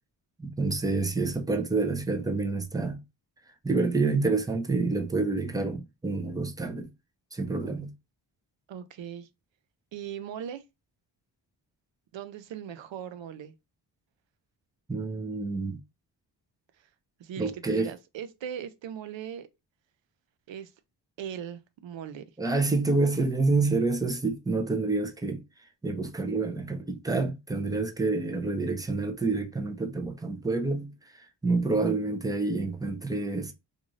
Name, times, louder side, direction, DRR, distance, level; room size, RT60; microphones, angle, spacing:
voice 1, 0.4-3.0 3.6-6.9 7.3-7.9 14.9-15.8 17.4-17.9 22.4-25.4 25.8-30.9 31.4-33.5, right 3 dB, 10° right, 0.5 m, -28 dB
voice 2, 8.7-9.3 9.9-10.6 12.1-13.5 17.2-19.5 20.5-20.7 21.2-22.2, right 9 dB, 80° right, 0.6 m, -39 dB
2.5 x 2.5 x 3.0 m
cardioid pair, 90°, 44 cm